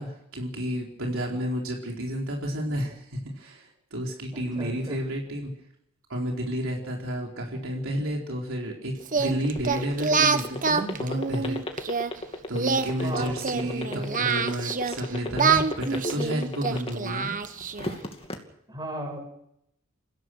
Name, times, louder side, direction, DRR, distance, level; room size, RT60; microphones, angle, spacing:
voice 1, 0.0-5.5 6.1-11.6 12.5-17.3, equal, 65° right, -1 dB, 4.5 m, -31 dB
voice 2, 4.3-5.0 13.0-14.4 18.7-19.3, equal, 20° right, 3 dB, 6.4 m, -37 dB
sound 1, 9.0-17.2 17.6-18.4, left 1 dB, 30° left, 2.5 m, -33 dB
Singing, 9.1-12.1 12.5-15.0 15.4-18.0, right 5 dB, 40° right, 1.2 m, -26 dB
29.5 x 16.5 x 6.4 m, 0.77 s
head